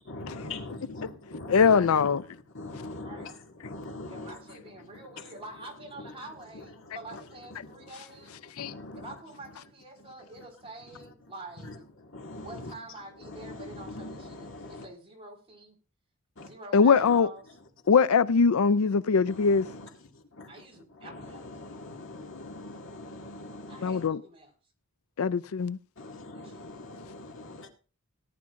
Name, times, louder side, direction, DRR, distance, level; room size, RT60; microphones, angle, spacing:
voice 1, 0.1-4.4 4.9-5.0 6.0-6.1 6.8-7.2 7.6-7.9 8.6-9.1 11.6-11.8 12.0-12.7 13.2-14.9 16.4-16.5 17.0-17.2 19.3-20.6 20.9-24.1 26.0-27.7, left 2 dB, 65° left, 2.2 m, -42 dB
voice 2, 1.5-2.2 8.6-8.7 16.7-17.3 17.9-19.7 22.1-22.4 23.8-24.2 25.2-25.8, left 5 dB, 85° left, 0.5 m, -22 dB
voice 3, 4.1-8.4 8.9-11.7 12.4-15.8 16.4-17.6 20.5-21.5 23.7-24.5 26.3-27.0, right 2 dB, 30° right, 4.2 m, -47 dB
18.0 x 10.5 x 2.5 m
head